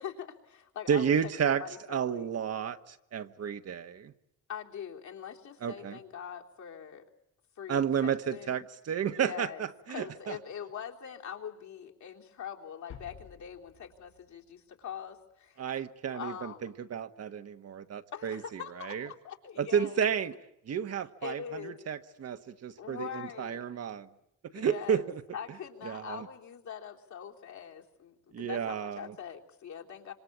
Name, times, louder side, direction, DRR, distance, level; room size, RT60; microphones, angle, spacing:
voice 1, 0.0-1.3 1.6-2.4 4.5-7.1 7.6-8.7 9.0-15.7 16.1-16.7 18.1-20.1 21.2-21.8 22.8-23.7 24.5-30.1, left 8 dB, 70° left, 0 dB, 3.7 m, -43 dB
voice 2, 0.9-1.6 1.9-4.1 5.6-6.0 7.7-10.4 15.6-18.4 18.8-19.1 19.6-20.3 20.7-24.1 24.5-25.2 25.8-26.2 28.3-29.1, right 8 dB, 55° right, 8 dB, 1.5 m, -32 dB
sound 1, 12.9-15.0, left 8 dB, 90° left, 4.9 m, -52 dB
26.5 x 25.5 x 8.6 m, 0.82 s
cardioid pair, 90°, 30 cm